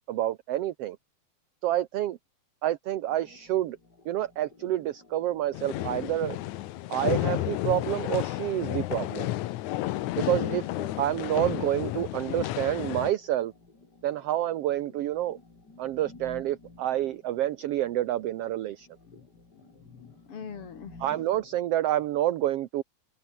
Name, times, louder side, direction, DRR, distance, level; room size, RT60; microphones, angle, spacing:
voice 1, 0.1-1.0 1.6-2.2 2.6-3.8 4.0-6.4 6.9-9.3 10.2-10.7 11.0-13.5 14.0-15.4 15.8-18.9 21.0-22.8, right 13 dB, 65° right, 1.7 m, -28 dB
sound 1, 3.1-21.5, left 3 dB, 35° left, 5.4 m, -54 dB
sound 2, 5.5-13.1, left 16 dB, 90° left, 2.2 m, -31 dB
voice 2, 11.2-11.6 19.1-19.3 19.5-21.0, left 6 dB, 50° left, 3.2 m, -44 dB
omnidirectional pair, 3.3 m